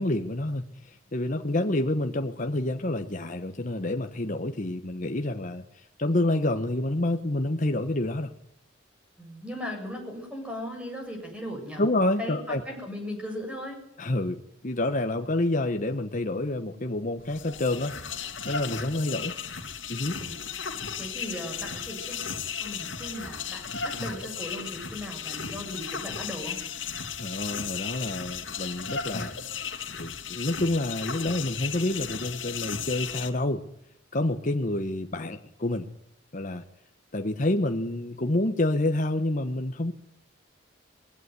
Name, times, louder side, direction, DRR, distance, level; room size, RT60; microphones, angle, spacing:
voice 1, 0.0-5.6 6.0-8.3 11.8-12.6 14.0-17.9 18.5-19.3 19.9-20.2 27.2-29.3 29.9-33.6 34.1-35.9 36.3-36.6 37.1-39.9, left 1 dB, 40° left, 6 dB, 1.2 m, -28 dB
voice 2, 9.2-11.8 12.2-13.8 20.2-20.4 21.0-26.6, left 1 dB, 5° right, 2 dB, 7.5 m, -37 dB
sound 1, 17.2-33.3, left 6 dB, 75° left, 2.4 m, -35 dB
21.0 x 17.0 x 9.7 m, 0.72 s
head